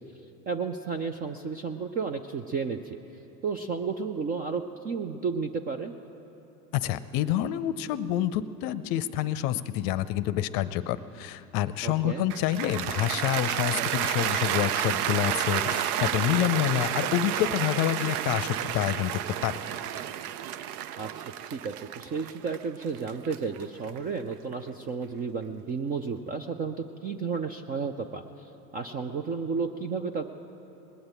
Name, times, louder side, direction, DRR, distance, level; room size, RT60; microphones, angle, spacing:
voice 1, 0.5-3.0 3.4-5.9 11.8-12.3 21.0-21.1 21.5-30.2, right 5 dB, 20° right, 7 dB, 0.3 m, -32 dB
voice 2, 6.7-19.6, left 12 dB, 45° left, 14 dB, 0.6 m, -28 dB
Cheering / Applause, 12.3-24.5, right 10 dB, 65° right, 0.7 m, -31 dB
20.0 x 7.9 x 8.9 m, 3.0 s
hypercardioid pair, 95°, 47 cm